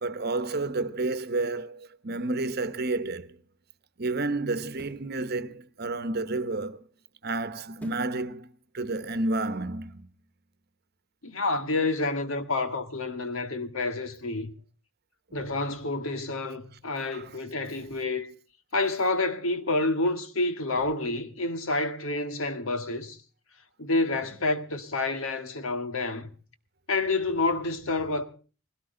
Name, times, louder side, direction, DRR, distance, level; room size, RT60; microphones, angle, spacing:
voice 1, 0.0-3.4 4.0-6.8 7.2-8.5 8.7-10.1 17.1-17.3, right 2 dB, 50° right, 1.1 m, -30 dB
sound 1, 4.8-5.1 7.8-8.2 8.7-8.8, equal, 5° left, 1.5 m, -46 dB
voice 2, 11.2-14.5 15.3-18.3 18.7-23.2 23.8-26.3 26.9-28.2, left 2 dB, 80° left, 1.8 m, -28 dB
20.0 x 17.0 x 3.9 m
head